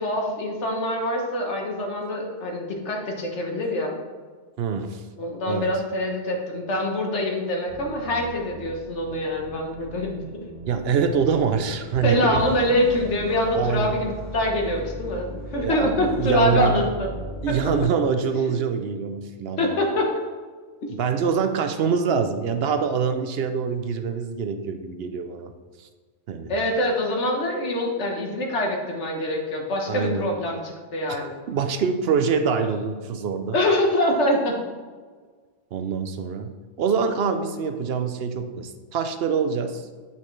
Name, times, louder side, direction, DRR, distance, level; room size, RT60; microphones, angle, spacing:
voice 1, 0.0-3.9 5.2-10.2 12.0-15.3 15.5-17.1 17.5-17.6 19.6-20.1 26.5-31.4 33.5-34.5, left 1 dB, 80° left, 1 dB, 1.5 m, -24 dB
voice 2, 4.6-5.0 5.4-5.7 10.7-12.4 13.5-13.9 15.5-16.8 17.4-19.7 20.9-25.5 25.8-25.9 26.3-26.5 29.9-30.3 31.1-31.2 31.5-33.6 35.7-39.9, right 6 dB, 65° right, 7 dB, 0.7 m, -25 dB
sound 1, 7.7-17.8, right 1 dB, 30° right, 2.3 m, -38 dB
8.4 x 5.5 x 3.2 m, 1.5 s
omnidirectional pair, 1.2 m